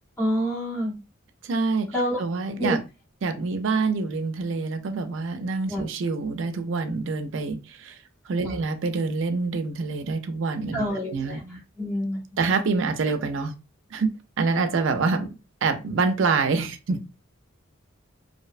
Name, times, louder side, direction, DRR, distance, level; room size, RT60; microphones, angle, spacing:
voice 1, 0.2-1.0 1.9-2.2 2.6-2.8 5.7-5.9 8.4-8.6 10.7-12.2, equal, 15° left, 0.7 m, -27 dB
voice 2, 1.4-1.9 2.2-2.8 3.2-7.9 8.3-11.4 12.4-13.5 13.9-14.1 14.4-15.3 15.6-17.0, right 4 dB, 60° right, 0.4 m, -26 dB
2.6 x 2.1 x 2.4 m
head